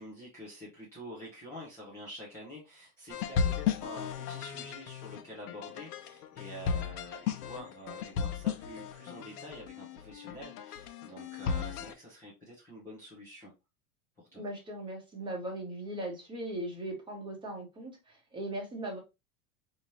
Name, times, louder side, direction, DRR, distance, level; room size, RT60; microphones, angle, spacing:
voice 1, 0.0-13.5 14.2-14.4, equal, 5° left, -6 dB, 0.3 m, -47 dB
sound 1, 3.1-11.9, left 7 dB, 80° left, 0.9 m, -35 dB
voice 2, 14.3-19.0, right 1 dB, 10° right, 1 dB, 0.8 m, -39 dB
5.0 x 2.8 x 3.0 m, 0.25 s
supercardioid pair, 170°, 46 cm